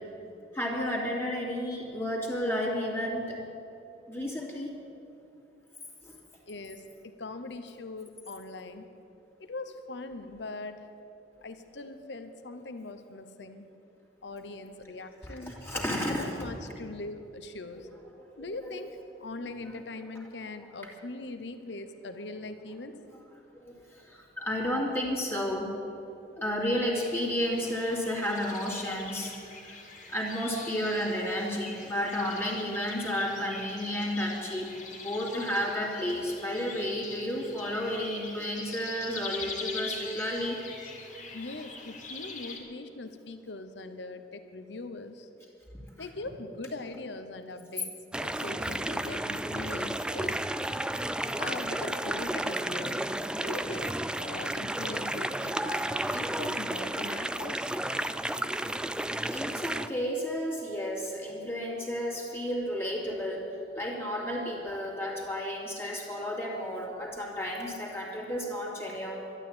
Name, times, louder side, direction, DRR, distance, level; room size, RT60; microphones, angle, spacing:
voice 1, 0.5-3.4 4.1-4.7 6.0-6.2 15.4-16.3 18.4-18.6 22.9-23.0 23.5-25.8 26.3-29.3 29.6-29.8 30.1-40.6 51.7-51.8 58.9-63.5 63.7-69.2, equal, 15° left, -2 dB, 2.6 m, -32 dB
voice 2, 6.5-8.9 9.4-10.9 11.4-13.7 14.2-15.8 16.2-17.9 18.4-22.9 41.3-45.3 46.0-47.9 48.2-50.4 51.3-53.0 53.4-57.7, left 2 dB, 75° left, 9 dB, 1.0 m, -41 dB
sound 1, 26.9-42.6, left 4 dB, 45° left, 2.3 m, -43 dB
sound 2, 48.1-59.9, right 1 dB, 5° right, 0.3 m, -32 dB
12.0 x 12.0 x 8.8 m, 2.7 s
head